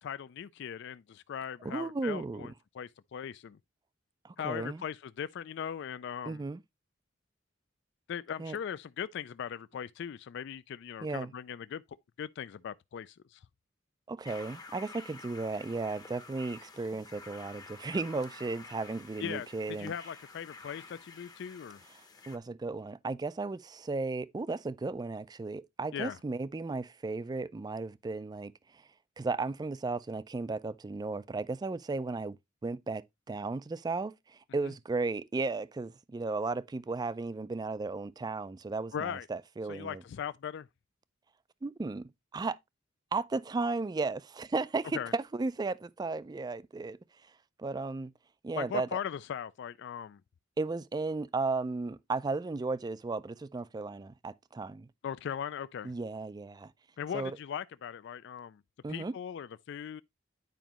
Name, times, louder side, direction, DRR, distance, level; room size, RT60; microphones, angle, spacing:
voice 1, 0.0-3.6 4.4-6.4 8.1-11.8 12.2-13.4 19.2-21.8 25.9-26.2 38.9-39.3 39.7-40.7 44.9-45.1 48.5-50.2 55.0-55.9 57.0-58.6 58.9-60.0, left 8 dB, 60° left, 0.3 m, -39 dB
voice 2, 1.6-2.5 4.2-4.8 6.3-6.6 8.4-8.6 11.0-11.3 14.1-19.9 22.3-28.5 29.2-32.4 32.6-40.0 41.6-42.6 43.1-47.0 47.6-48.1 48.4-48.9 50.6-54.9 55.8-56.7 57.1-57.4 58.8-59.1, right 3 dB, 20° right, 0.3 m, -35 dB
sound 1, 14.2-22.4, left 4 dB, 20° left, 0.7 m, -50 dB
9.2 x 5.0 x 2.9 m
head